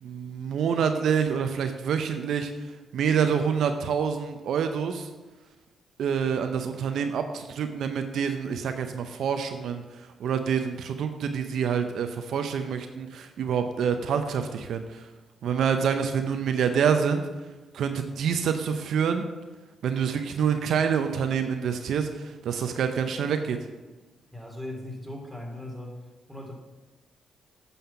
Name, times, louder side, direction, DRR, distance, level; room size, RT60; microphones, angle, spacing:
voice 1, 0.0-2.5 2.9-5.1 6.0-15.1 15.4-17.2 17.7-19.3 19.8-23.6, right 7 dB, 70° right, 7 dB, 0.6 m, -27 dB
voice 2, 24.3-26.0 26.3-26.5, left 1 dB, ahead, -1 dB, 2.9 m, -38 dB
9.0 x 5.6 x 5.6 m, 1.2 s
supercardioid pair, 55°, 0 cm